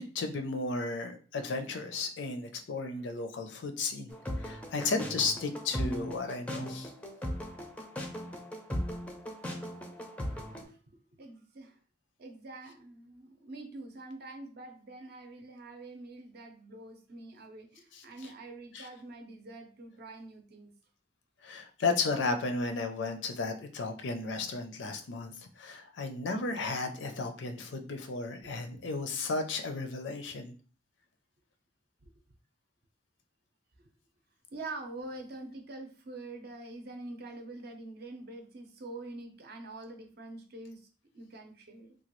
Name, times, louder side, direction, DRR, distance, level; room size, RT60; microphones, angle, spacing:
voice 1, 0.0-6.9 17.9-18.0 18.7-18.9 21.4-30.5, left 3 dB, 75° left, 7 dB, 0.5 m, -34 dB
sound 1, 4.1-10.6, equal, 5° left, 0.4 m, -38 dB
voice 2, 10.4-10.8 11.2-11.8 12.2-20.7 28.4-28.8 32.0-32.1 33.8-33.9 34.5-40.9 41.1-42.0, right 2 dB, 60° right, 4 dB, 0.6 m, -45 dB
2.9 x 2.2 x 3.0 m, 0.40 s
head